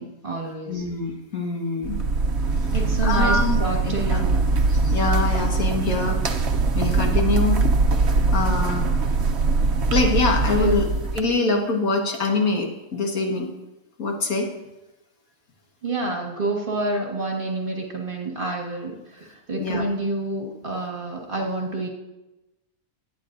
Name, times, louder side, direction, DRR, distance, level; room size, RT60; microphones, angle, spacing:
voice 1, 0.0-0.8 2.7-4.4 10.6-10.8 15.8-21.9, right 2 dB, 35° right, 0 dB, 1.7 m, -28 dB
voice 2, 0.7-2.0 2.7-3.6 3.8-4.2 4.7-6.2 6.7-7.6 8.3-8.9 9.9-10.9 11.1-13.5 14.0-14.5 19.6-19.8, left 3 dB, 70° left, 1 dB, 2.0 m, -24 dB
sound 1, 1.8-11.2, right 3 dB, 55° right, 1.0 m, -22 dB
20.5 x 9.3 x 2.6 m, 1.0 s
omnidirectional pair, 1.5 m